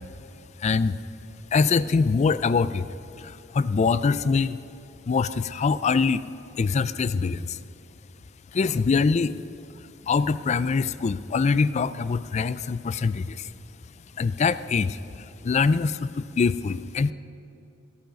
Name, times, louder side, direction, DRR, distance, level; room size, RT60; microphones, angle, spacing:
voice 1, 0.6-1.0 1.5-2.9 3.2-4.6 5.1-6.2 6.6-7.6 8.5-9.4 10.0-13.5 14.2-17.1, left 4 dB, 35° left, 15 dB, 0.3 m, -24 dB
13.5 x 13.5 x 5.2 m, 2.9 s
head